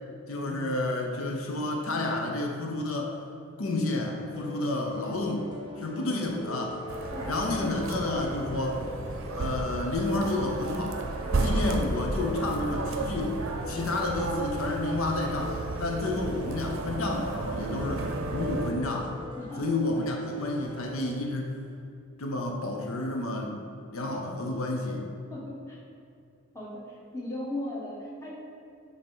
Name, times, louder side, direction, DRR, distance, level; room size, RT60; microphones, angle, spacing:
voice 1, 0.3-3.2 3.6-5.5 5.8-6.8 7.2-8.8 9.3-11.0 11.4-13.4 13.7-19.1 19.6-21.6 22.2-23.6 23.9-25.1, left 2 dB, 75° left, 1 dB, 0.7 m, -30 dB
sound 1, 4.3-21.2, equal, 25° right, 0.5 m, -43 dB
sound 2, 6.9-18.7, right 2 dB, 70° right, 0.6 m, -33 dB
voice 2, 7.6-8.3 19.4-19.6 25.3-25.8 26.5-28.3, left 1 dB, 15° left, -7 dB, 1.2 m, -37 dB
7.2 x 2.8 x 5.4 m, 2.5 s
head